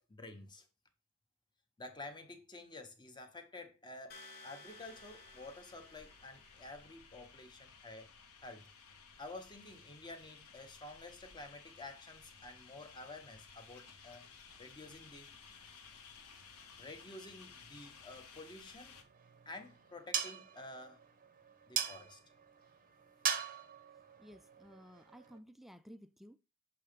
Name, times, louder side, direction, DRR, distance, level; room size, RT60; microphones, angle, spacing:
voice 1, 0.1-0.7 1.8-4.2 4.4-8.1 8.4-8.7 9.2-14.3 14.6-15.3 16.2-16.3 16.8-19.0 19.4-21.0 21.7-22.2, left 2 dB, 20° left, 0.9 m, -50 dB
sound 1, 4.1-7.0, left 2 dB, 45° left, 1.0 m, -56 dB
sound 2, 4.6-19.0, left 5 dB, 75° left, 0.9 m, -57 dB
sound 3, 18.9-25.4, right 8 dB, 40° right, 0.7 m, -41 dB
voice 2, 24.2-26.4, equal, ahead, 0.3 m, -55 dB
6.9 x 2.8 x 5.0 m
head